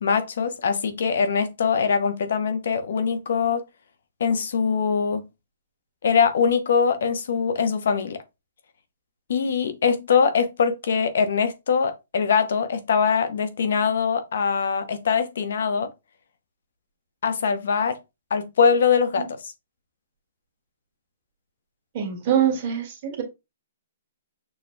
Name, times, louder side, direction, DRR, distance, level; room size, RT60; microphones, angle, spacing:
voice 1, 0.0-3.6 4.2-5.2 6.0-8.2 9.3-15.9 17.2-17.9 18.3-19.5, left 6 dB, 70° left, 0.8 m, -22 dB
voice 2, 21.9-23.2, right 9 dB, 35° right, 1.7 m, -24 dB
6.3 x 2.2 x 3.2 m
hypercardioid pair, 155°, 0 cm